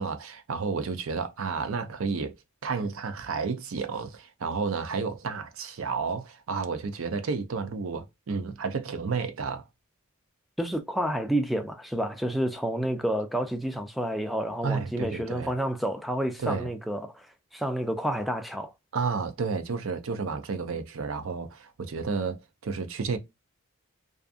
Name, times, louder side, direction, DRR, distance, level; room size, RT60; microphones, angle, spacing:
voice 1, 0.0-2.3 2.6-9.6 14.6-15.5 16.4-16.7 18.9-23.2, right 5 dB, 65° right, 0.5 m, -31 dB
voice 2, 10.6-17.3 17.5-18.7, right 1 dB, ahead, 0.3 m, -29 dB
2.5 x 2.4 x 2.3 m
head